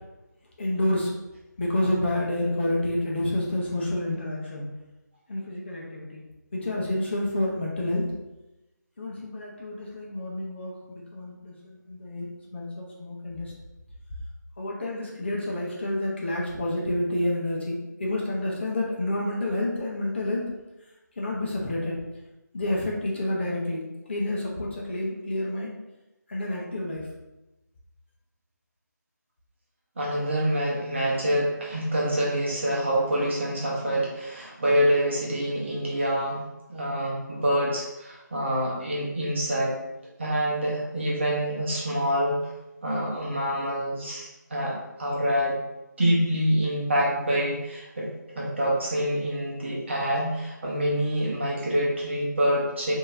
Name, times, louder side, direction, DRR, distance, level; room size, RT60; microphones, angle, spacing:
voice 1, 0.6-1.1 1.6-4.7 5.3-6.2 6.5-8.0 9.0-13.5 14.6-20.4 21.2-22.0 22.5-23.8 24.1-25.7 26.3-27.1, left 1 dB, 35° left, -3 dB, 0.9 m, -29 dB
voice 2, 30.0-36.4 36.7-39.8 40.2-42.4 42.8-45.6 46.0-48.1 48.3-52.9, equal, 35° right, -4 dB, 1.0 m, -26 dB
4.7 x 2.9 x 2.7 m, 0.99 s
figure-of-eight pair, 165°, 10 cm